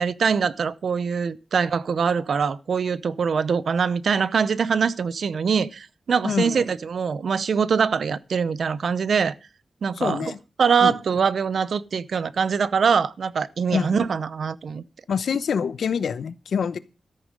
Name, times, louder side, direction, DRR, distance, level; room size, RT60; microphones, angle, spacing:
voice 1, 0.0-9.4 9.8-10.3 10.6-14.8, right 6 dB, 70° right, 0.7 m, -23 dB
voice 2, 6.2-6.6 9.9-10.4 10.8-10.9 13.7-14.0 15.1-16.8, left 6 dB, 85° left, 0.9 m, -25 dB
13.5 x 8.1 x 5.2 m
wide cardioid pair, 130°, 0 cm